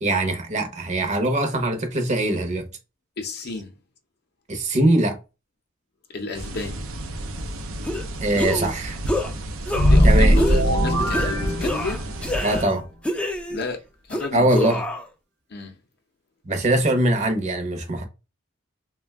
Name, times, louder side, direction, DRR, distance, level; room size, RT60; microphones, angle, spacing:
voice 1, 0.0-2.7 4.5-5.2 8.2-9.0 10.0-10.4 12.4-12.9 14.3-14.8 16.4-18.1, right 1 dB, 35° right, 0.7 m, -22 dB
voice 2, 3.2-3.7 6.1-6.9 9.8-12.0 13.5-13.8 14.1-14.8 15.5-15.7, left 3 dB, 55° left, 0.6 m, -32 dB
sound 1, 6.3-12.6, right 1 dB, 85° right, 0.5 m, -32 dB
sound 2, 7.9-8.0 8.4-8.7 9.1-9.3 9.7-10.1 10.4-10.7 11.1-11.3 11.6-12.7 13.0-13.7 14.1-15.1, left 1 dB, 5° left, 0.4 m, -27 dB
sound 3, 9.7-12.3, equal, 55° right, 1.0 m, -18 dB
2.4 x 2.2 x 3.4 m
head